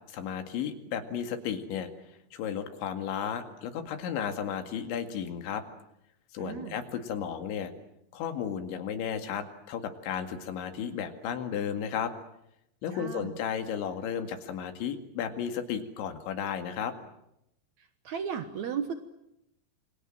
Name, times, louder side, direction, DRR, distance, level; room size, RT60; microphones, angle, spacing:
voice 1, 0.1-5.6 6.3-7.7 8.1-12.1 12.8-16.9, left 8 dB, 80° left, 7 dB, 4.5 m, -34 dB
voice 2, 6.4-6.8 12.9-13.2 18.0-18.9, right 7 dB, 85° right, 9 dB, 1.6 m, -34 dB
27.5 x 25.5 x 7.6 m, 0.81 s
omnidirectional pair, 5.2 m